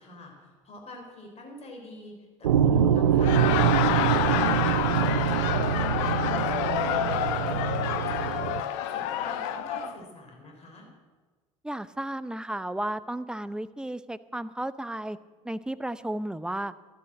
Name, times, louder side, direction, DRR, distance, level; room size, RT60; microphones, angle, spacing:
voice 1, 0.0-10.9, left 1 dB, 35° left, 1 dB, 3.7 m, -46 dB
sound 1, 2.4-8.6, right 8 dB, 75° right, 0.5 m, -24 dB
Laughter, 3.1-9.9, left 10 dB, 60° left, 0.9 m, -28 dB
voice 2, 11.6-15.2 15.4-16.7, right 1 dB, 5° right, 14 dB, 0.6 m, -33 dB
12.5 x 11.0 x 7.3 m, 1.4 s
figure-of-eight pair, 60°, 18 cm